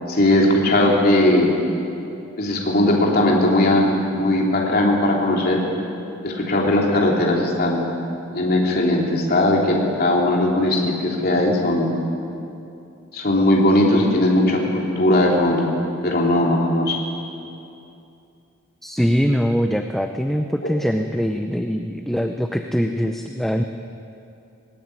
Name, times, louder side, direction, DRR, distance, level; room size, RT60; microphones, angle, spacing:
voice 1, 0.1-1.5 2.4-5.6 6.2-7.9 8.3-11.9 13.1-15.7 16.0-17.0, left 1 dB, 45° left, -2 dB, 3.2 m, -18 dB
voice 2, 18.8-23.6, equal, ahead, 5 dB, 0.7 m, -22 dB
20.0 x 17.0 x 9.8 m, 2.7 s
head